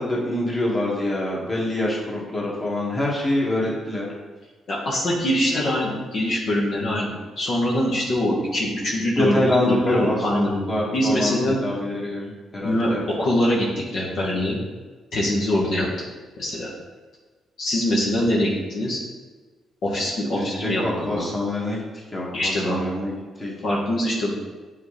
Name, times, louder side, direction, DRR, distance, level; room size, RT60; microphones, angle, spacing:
voice 1, 0.0-4.1 5.5-5.6 9.2-13.0 20.3-21.8 22.1-23.5, left 1 dB, 20° left, -4 dB, 1.8 m, -25 dB
voice 2, 4.7-11.5 12.6-13.7 13.9-14.6 15.1-15.9 16.4-16.7 17.6-19.0 19.8-21.3 22.3-22.8 23.6-24.4, left 1 dB, 60° left, -4 dB, 1.3 m, -23 dB
8.0 x 3.7 x 3.3 m, 1.3 s
cardioid pair, 90°, 0 cm